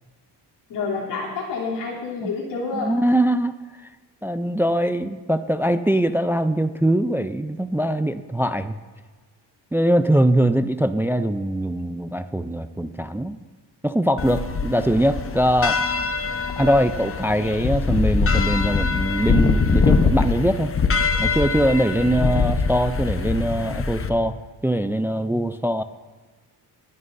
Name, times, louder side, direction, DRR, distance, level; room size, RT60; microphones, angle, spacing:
voice 1, 0.7-3.0 25.3-25.4, left 4 dB, 90° left, -4 dB, 3.2 m, -28 dB
voice 2, 2.7-3.5 4.2-8.7 9.7-13.4 13.8-15.8 16.6-20.7 21.2-25.8, right 1 dB, 5° right, 11 dB, 0.3 m, -22 dB
sound 1, 14.2-24.1, left 4 dB, 30° left, 0.9 m, -23 dB
19.5 x 11.0 x 2.6 m, 1.4 s
cardioid pair, 95°, 41 cm